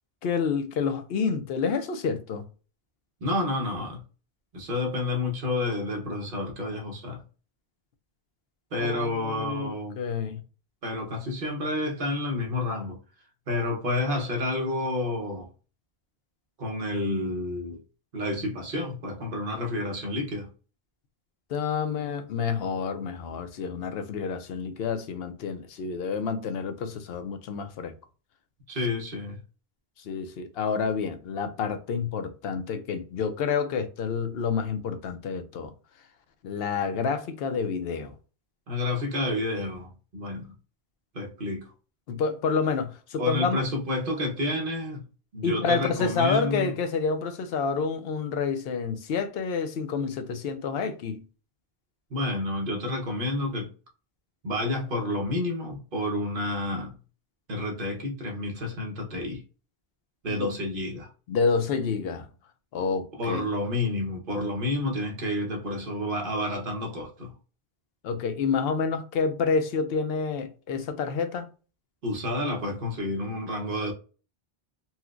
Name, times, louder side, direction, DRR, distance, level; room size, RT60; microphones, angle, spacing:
voice 1, 0.2-2.4 8.8-10.4 21.5-27.9 30.0-35.7 36.4-38.1 42.1-43.6 45.4-51.2 60.3-60.5 61.3-62.3 62.7-63.5 68.0-71.5, left 5 dB, 75° left, 0.8 m, -28 dB
voice 2, 3.2-4.0 4.5-7.2 8.7-10.0 10.8-13.0 13.5-15.5 16.6-17.8 18.1-20.5 28.7-29.4 38.7-40.5 41.1-41.7 43.2-45.0 45.3-46.7 52.1-53.7 54.4-56.9 57.5-59.4 60.2-61.1 63.1-67.3 72.0-73.9, left 2 dB, 60° right, 1.1 m, -30 dB
4.2 x 2.1 x 2.4 m
omnidirectional pair, 1.0 m